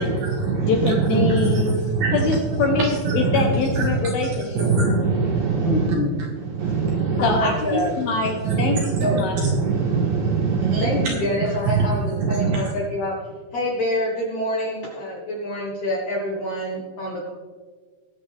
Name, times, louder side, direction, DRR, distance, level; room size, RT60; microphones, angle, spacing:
voice 1, 0.0-2.4 2.7-2.8 3.1-3.4 3.8-4.2 4.5-7.4 8.4-11.1 11.7-11.9 12.1-12.7, right 4 dB, 70° right, 1 dB, 2.2 m, -22 dB
voice 2, 0.6-1.8 2.1-4.7 7.2-9.4, left 4 dB, 75° left, 2 dB, 2.3 m, -24 dB
voice 3, 5.6-6.1 7.2-7.9 9.0-9.2 10.8-13.2 13.5-17.3, left 1 dB, 60° left, -3 dB, 2.1 m, -26 dB
20.0 x 7.2 x 3.4 m, 1.5 s
omnidirectional pair, 5.2 m